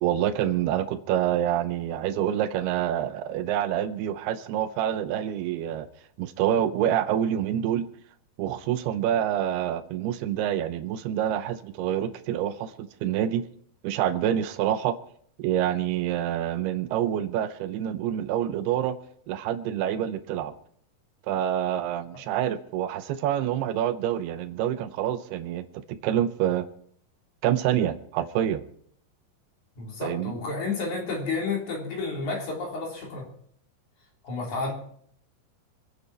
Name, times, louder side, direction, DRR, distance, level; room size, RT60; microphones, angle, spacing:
voice 1, 0.0-5.9 6.2-7.9 8.4-13.5 13.8-15.0 15.4-19.0 19.3-20.5 21.3-26.7 27.4-28.6 30.0-30.4, right 10 dB, 80° right, 10 dB, 2.6 m, -27 dB
voice 2, 29.8-33.3 34.2-34.7, left 4 dB, 45° left, -1 dB, 4.6 m, -31 dB
25.5 x 9.6 x 4.4 m, 0.63 s
omnidirectional pair, 5.2 m